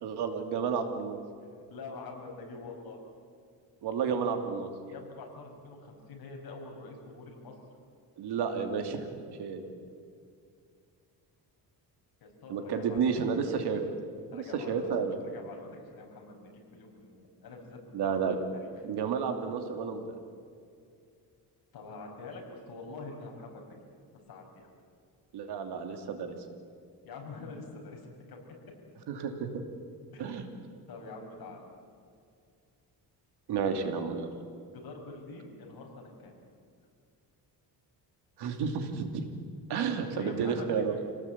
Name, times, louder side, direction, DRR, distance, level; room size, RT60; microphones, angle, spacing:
voice 1, 0.0-1.2 3.8-4.7 8.2-9.1 9.4-9.6 12.5-13.8 14.3-15.2 17.9-18.4 18.8-20.0 25.3-26.4 29.1-29.6 30.2-30.5 33.5-34.3 38.4-39.3 39.7-40.9, right 6 dB, 75° right, 6 dB, 2.8 m, -31 dB
voice 2, 1.4-3.0 4.9-7.6 12.2-13.2 14.3-14.9 15.2-18.2 18.5-18.7 21.7-23.6 24.3-24.7 27.0-28.0 28.3-28.4 30.1-30.4 30.9-31.6 34.7-36.3 40.0-40.7, left 3 dB, 60° left, 1 dB, 5.5 m, -45 dB
26.5 x 18.0 x 8.7 m, 2.3 s
cardioid pair, 155°, 40 cm